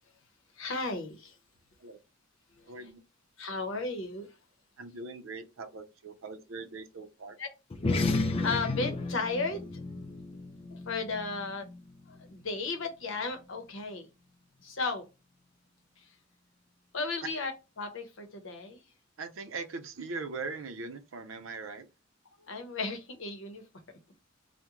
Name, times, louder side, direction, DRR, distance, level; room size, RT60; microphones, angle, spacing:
voice 1, 0.6-1.4 2.6-2.9 3.4-4.3 7.4-7.5 7.9-9.7 10.7-11.7 12.1-14.1 14.6-15.1 16.0-16.1 16.9-17.5 17.8-18.8 22.4-23.6, left 3 dB, 70° left, 0.8 m, -35 dB
voice 2, 2.7-3.0 4.8-7.4 19.2-21.9, right 3 dB, 85° right, 0.5 m, -41 dB
sound 1, 7.7-12.5, left 3 dB, 30° left, 0.3 m, -33 dB
2.9 x 2.1 x 3.5 m
head